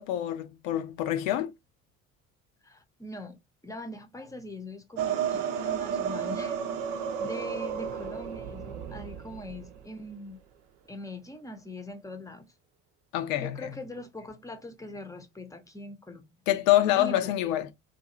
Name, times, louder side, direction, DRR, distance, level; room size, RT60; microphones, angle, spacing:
voice 1, 0.0-1.5 13.1-13.7 16.5-17.7, left 13 dB, 75° left, 0.6 m, -26 dB
voice 2, 2.6-3.4 3.6-6.6 7.2-10.4 10.9-12.5 13.4-16.3 16.9-17.3, left 1 dB, 10° left, 0.7 m, -42 dB
sound 1, 5.0-9.8, right 8 dB, 65° right, 0.7 m, -32 dB
2.6 x 2.5 x 2.5 m
hypercardioid pair, 60°, 40 cm